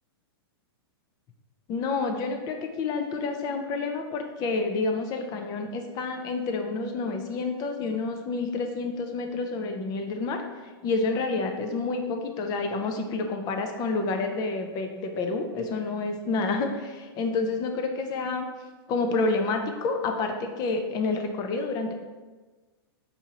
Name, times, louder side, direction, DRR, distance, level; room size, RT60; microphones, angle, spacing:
voice 1, 1.7-10.4 10.8-18.5 18.9-21.9, left 3 dB, 30° left, 4 dB, 0.5 m, -29 dB
4.5 x 2.6 x 2.8 m, 1.3 s
hypercardioid pair, 130°, 13 cm